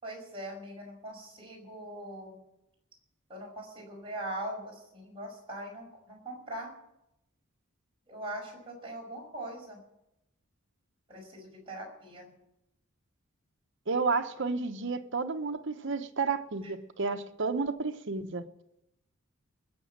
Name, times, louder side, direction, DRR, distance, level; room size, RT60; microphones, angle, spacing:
voice 1, 0.0-2.4 3.3-6.7 8.1-9.8 11.1-12.3 16.6-16.7, right 1 dB, 25° right, -2 dB, 5.6 m, -41 dB
voice 2, 13.9-18.4, right 4 dB, 60° right, 8 dB, 0.9 m, -31 dB
20.5 x 7.2 x 7.4 m, 0.87 s
head